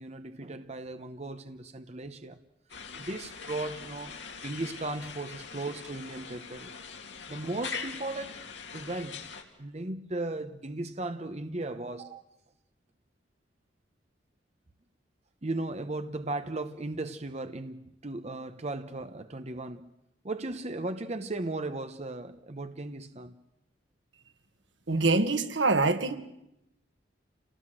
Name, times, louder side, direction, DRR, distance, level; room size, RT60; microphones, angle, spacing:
voice 1, 0.0-2.4 2.9-4.1 4.4-6.8 7.3-8.4 8.7-9.2 9.6-12.2 15.4-19.9 20.2-23.4, right 2 dB, 35° right, 1.0 m, -36 dB
sound 1, 2.7-9.4, left 5 dB, 75° left, 3.0 m, -42 dB
voice 2, 24.9-26.2, right 3 dB, 80° right, 1.8 m, -24 dB
28.0 x 19.0 x 7.8 m
head